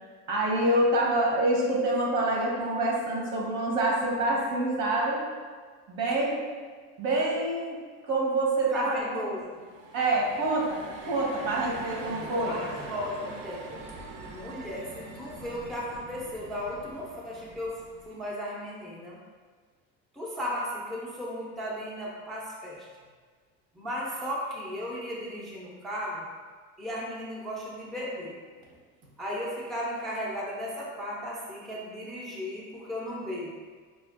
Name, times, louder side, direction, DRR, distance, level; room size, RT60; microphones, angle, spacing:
voice 1, 0.3-5.3 5.9-6.4 7.0-9.2 9.9-12.6, right 1 dB, 75° right, -3 dB, 1.1 m, -26 dB
voice 2, 8.7-9.6 12.2-13.6 14.3-17.8 18.1-19.2 20.1-22.9 23.7-26.3 26.8-28.4 29.2-33.5, equal, ahead, -5 dB, 0.4 m, -35 dB
sound 1, 9.5-18.3, right 3 dB, 55° right, 0.6 m, -43 dB
5.0 x 2.4 x 2.4 m, 1.5 s
cardioid pair, 130°, 36 cm